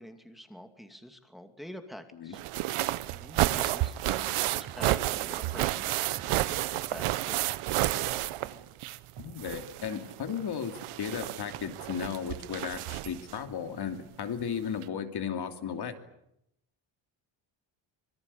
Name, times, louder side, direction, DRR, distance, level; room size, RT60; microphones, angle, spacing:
voice 1, 0.0-2.4 3.1-5.9 6.2-7.4, equal, ahead, 6 dB, 2.6 m, -47 dB
sound 1, 2.3-9.1 9.4-13.3 14.4-14.5 14.8-14.9, right 15 dB, 85° right, 1.2 m, -31 dB
sound 2, 4.7-4.8 5.4-5.6 6.2-6.3 6.9-7.1 7.7-7.8 8.4-8.6 9.2-9.3 9.9-10.1, right 8 dB, 60° right, 7.8 m, -46 dB
voice 2, 9.2-16.0, left 7 dB, 50° left, 7 dB, 2.8 m, -35 dB
26.0 x 23.0 x 8.6 m, 0.79 s
cardioid pair, 145°, 49 cm